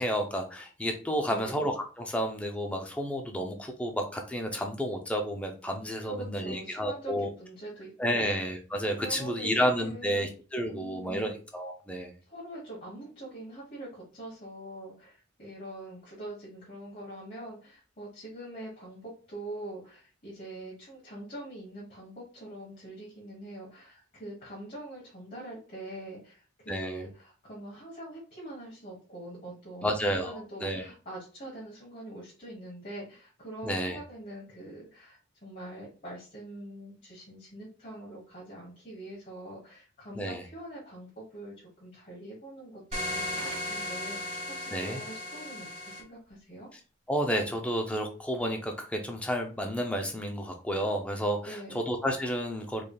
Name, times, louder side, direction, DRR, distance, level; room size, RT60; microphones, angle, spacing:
voice 1, 0.0-7.3 8.0-12.1 26.7-27.0 29.8-30.8 33.6-34.0 40.2-40.4 44.7-45.0 47.1-52.8, equal, 5° left, 3 dB, 0.5 m, -31 dB
voice 2, 1.2-1.6 6.1-8.3 9.0-10.3 10.6-11.3 12.3-46.7 51.4-51.8, right 1 dB, 40° left, -5 dB, 1.2 m, -44 dB
sound 1, 42.9-46.0, left 1 dB, 30° right, 1.1 m, -35 dB
3.9 x 3.3 x 2.3 m, 0.37 s
head